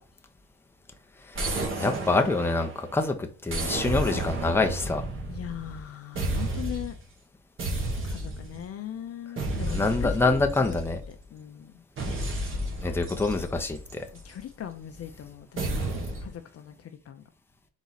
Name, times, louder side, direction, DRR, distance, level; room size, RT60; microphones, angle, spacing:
sound 1, 1.3-2.9 3.5-5.8 6.2-7.0 7.6-8.6 9.4-11.2 12.0-14.4 15.6-16.3, right 1 dB, 45° right, 1.3 m, -32 dB
voice 1, 1.8-5.0 9.7-11.0 12.8-14.0, left 3 dB, 10° left, 0.7 m, -26 dB
voice 2, 5.3-7.0 8.0-10.8 11.1-11.8 14.1-15.8 16.2-17.2, left 10 dB, 50° left, 0.6 m, -40 dB
4.0 x 3.0 x 4.0 m
cardioid pair, 90°, 30 cm